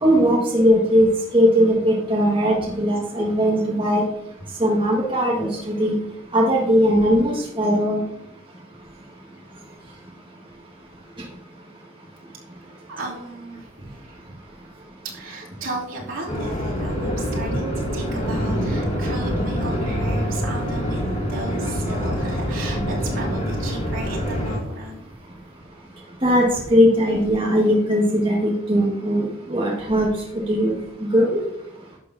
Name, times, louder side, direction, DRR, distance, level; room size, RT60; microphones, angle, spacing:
voice 1, 0.0-1.1 1.3-4.0 4.6-5.9 6.3-8.0 26.2-30.1 30.3-31.4, equal, 25° right, -3 dB, 1.6 m, -19 dB
voice 2, 12.9-14.4 15.1-25.1, right 2 dB, 75° right, -4 dB, 2.8 m, -35 dB
sound 1, 16.3-24.6, equal, 35° left, 2.4 m, -25 dB
11.0 x 6.8 x 2.7 m, 0.82 s
head